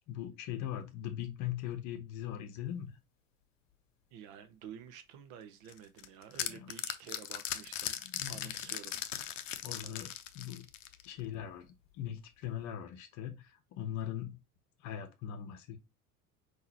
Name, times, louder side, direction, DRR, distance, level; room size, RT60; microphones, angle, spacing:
voice 1, 0.1-2.9 6.5-6.7 8.1-8.5 9.6-10.7 11.0-11.7 11.9-14.4 14.8-15.8, left 10 dB, 40° left, 1.0 m, -40 dB
voice 2, 4.1-8.0 8.3-9.0 9.6-10.1, right 8 dB, 40° right, 0.8 m, -51 dB
sound 1, 5.7-11.2, left 11 dB, 55° left, 0.7 m, -39 dB
5.8 x 2.8 x 2.8 m
figure-of-eight pair, 75°, 45 cm